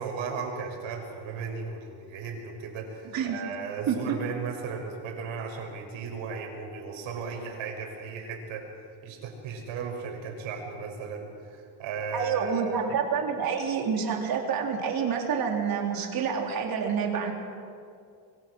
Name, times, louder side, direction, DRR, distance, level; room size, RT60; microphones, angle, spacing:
voice 1, 0.0-8.6 9.0-12.8, right 5 dB, 80° right, 2 dB, 6.3 m, -36 dB
voice 2, 3.9-4.2 12.1-17.3, right 6 dB, 50° right, 1 dB, 4.1 m, -28 dB
25.5 x 24.0 x 6.4 m, 2.4 s
cardioid pair, 170°, 46 cm